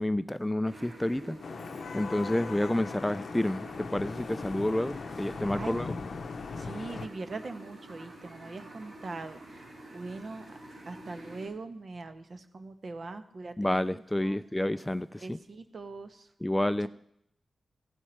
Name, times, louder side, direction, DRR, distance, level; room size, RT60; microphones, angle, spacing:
voice 1, 0.0-1.4 1.9-5.9 13.6-15.4 16.4-16.9, left 1 dB, 10° left, 0.3 m, -29 dB
sound 1, 0.6-11.5, right 1 dB, 75° right, 5.1 m, -48 dB
Vehicle horn car horn honking / Traffic noise roadway noise, 1.4-7.1, left 4 dB, 70° left, 0.6 m, -39 dB
voice 2, 6.6-10.6 10.8-14.4 15.2-16.3, right 3 dB, 55° right, 1.1 m, -42 dB
15.5 x 9.1 x 4.5 m
cardioid pair, 65°, 0 cm